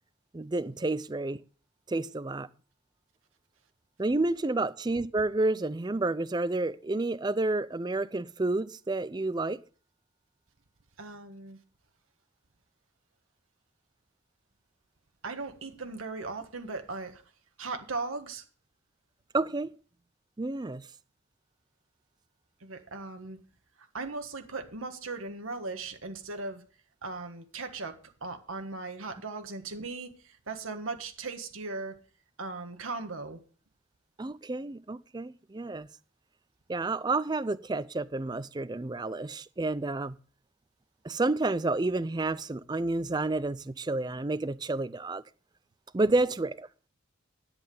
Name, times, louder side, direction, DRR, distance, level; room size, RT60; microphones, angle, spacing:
voice 1, 0.3-1.4 1.9-2.5 4.0-9.6 19.3-19.7 20.4-20.9 34.2-35.9 36.7-40.2 41.0-45.2 45.9-46.7, right 2 dB, 20° right, 0.4 m, -30 dB
voice 2, 11.0-11.6 15.2-17.2 17.6-18.4 22.6-23.4 23.9-26.6 27.0-32.0 32.4-33.4, right 3 dB, 90° right, 1.5 m, -38 dB
10.5 x 8.8 x 5.4 m
head